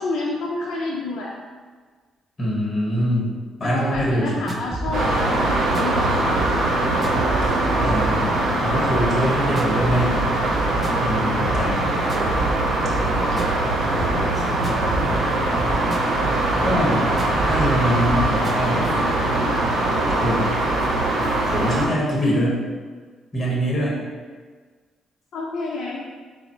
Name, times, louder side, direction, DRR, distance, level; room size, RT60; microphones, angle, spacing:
voice 1, 0.0-1.3 3.6-6.7 7.8-8.1 11.4-11.7 25.3-26.0, left 3 dB, 70° left, -4 dB, 0.5 m, -29 dB
voice 2, 2.4-3.3 3.6-4.5 7.8-10.2 11.0-11.8 13.1-13.3 13.8-14.6 16.6-17.1 17.5-18.9 20.2-20.5 21.4-22.6 23.3-24.0, equal, 20° left, -5 dB, 1.1 m, -24 dB
sound 1, 3.9-19.1, right 1 dB, 20° right, 0.4 m, -32 dB
sound 2, 4.9-21.9, right 2 dB, 70° right, 0.7 m, -22 dB
3.9 x 2.0 x 4.2 m, 1.5 s
cardioid pair, 90°, 0 cm